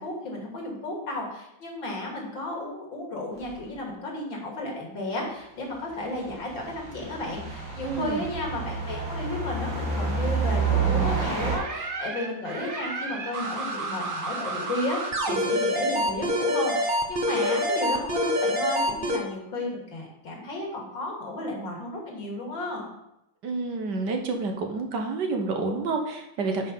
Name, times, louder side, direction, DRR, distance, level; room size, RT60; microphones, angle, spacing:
voice 1, 0.0-22.9, left 1 dB, 75° left, -1 dB, 3.1 m, -33 dB
sound 1, 3.4-3.5 6.1-11.6, right 5 dB, 85° right, 2.8 m, -28 dB
voice 2, 7.8-8.2 23.4-26.7, right 3 dB, 65° right, 4 dB, 1.7 m, -29 dB
sound 2, 11.5-19.2, equal, 35° right, 0.9 m, -27 dB
9.1 x 5.4 x 5.5 m, 0.83 s
omnidirectional pair, 2.1 m